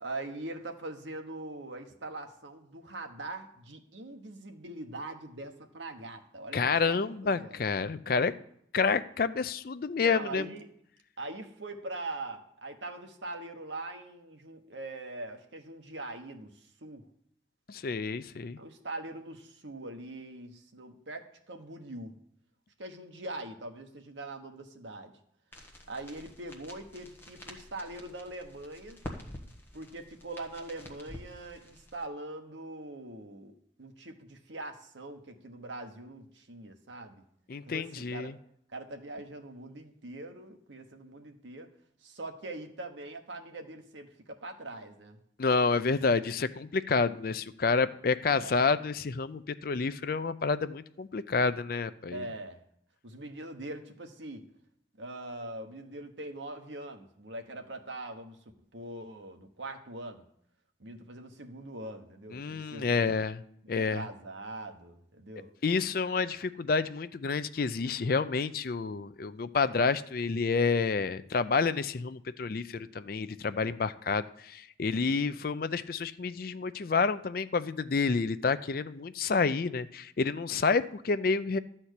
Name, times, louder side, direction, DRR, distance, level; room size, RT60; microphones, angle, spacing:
voice 1, 0.0-7.6 10.0-10.7 11.2-17.0 18.6-22.1 22.8-25.1 25.6-29.0 29.7-33.5 33.8-37.2 37.6-38.4 38.7-41.7 42.0-45.2 48.3-48.6 52.1-52.6 53.0-54.4 55.0-58.4 58.7-60.2 60.8-63.2 63.7-65.5, right 2 dB, 75° right, 5 dB, 1.2 m, -42 dB
voice 2, 6.5-8.3 8.7-10.5 17.7-18.6 37.5-38.4 45.4-52.2 62.3-63.4 63.7-64.0 65.6-81.6, left 4 dB, 50° left, 13 dB, 0.4 m, -29 dB
sound 1, 25.5-32.1, left 1 dB, 10° left, 1.2 m, -48 dB
13.0 x 4.4 x 8.2 m, 0.71 s
head